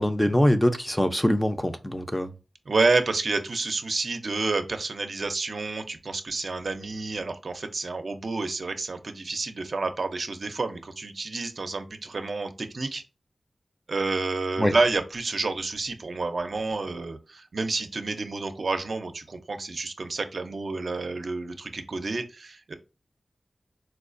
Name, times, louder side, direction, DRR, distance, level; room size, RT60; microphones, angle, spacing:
voice 1, 0.0-2.3 14.6-14.7, equal, 10° left, 0.5 m, -23 dB
voice 2, 2.7-13.0 13.9-22.7, right 3 dB, 65° right, 0.5 m, -29 dB
4.3 x 2.4 x 2.5 m
wide cardioid pair, 95°, 0 cm